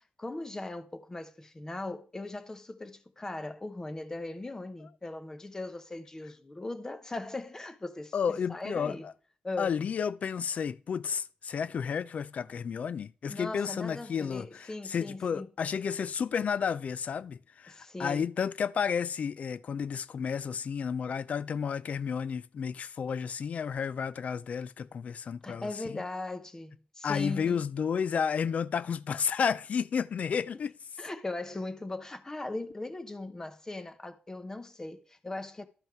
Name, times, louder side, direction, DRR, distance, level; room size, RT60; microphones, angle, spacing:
voice 1, 0.0-9.1 9.4-9.7 13.3-15.5 17.7-18.3 25.4-27.6 31.0-35.7, left 2 dB, 20° left, 0.9 m, -39 dB
voice 2, 8.1-9.1 9.6-26.0 27.0-30.7, left 7 dB, 60° left, 0.4 m, -32 dB
12.0 x 5.5 x 4.5 m
cardioid pair, 100°, 3 cm